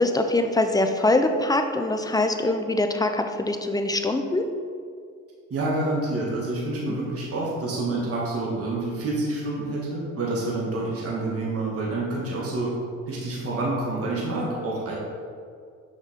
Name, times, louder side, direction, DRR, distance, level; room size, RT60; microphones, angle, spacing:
voice 1, 0.0-4.4 6.9-7.0, left 2 dB, 10° left, 6 dB, 0.6 m, -23 dB
voice 2, 5.5-12.7 13.1-15.0, right 2 dB, 45° right, -5 dB, 1.7 m, -28 dB
6.3 x 5.3 x 3.6 m, 2.2 s
supercardioid pair, 65°, 34 cm